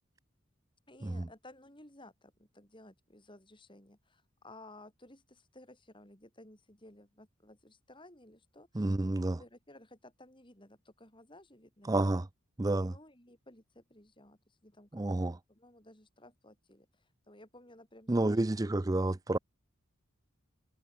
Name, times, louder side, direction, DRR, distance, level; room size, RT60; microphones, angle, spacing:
voice 1, 0.9-12.1 12.8-18.4 18.8-19.0, left 1 dB, 20° left, 5.7 m, -56 dB
voice 2, 8.7-9.4 11.9-12.3 12.6-12.9 14.9-15.4 18.1-19.4, right 2 dB, 15° right, 0.4 m, -30 dB
head